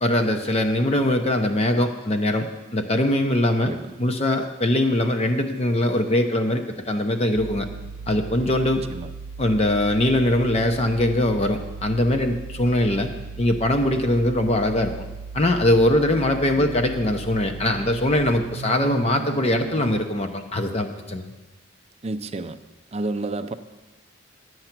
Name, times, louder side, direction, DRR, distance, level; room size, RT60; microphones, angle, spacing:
voice 1, 0.0-2.5 2.7-3.7 4.0-7.7 8.1-8.8 9.4-13.1 13.4-14.9 15.3-21.3, left 1 dB, 30° left, 5 dB, 0.7 m, -22 dB
voice 2, 3.6-3.9 8.9-9.1 16.5-16.7 17.8-18.0 22.0-22.6 22.9-23.5, right 2 dB, 30° right, 10 dB, 0.5 m, -31 dB
sound 1, 7.3-20.0, right 5 dB, 85° right, 0.4 m, -37 dB
11.0 x 7.9 x 5.9 m, 1.1 s
head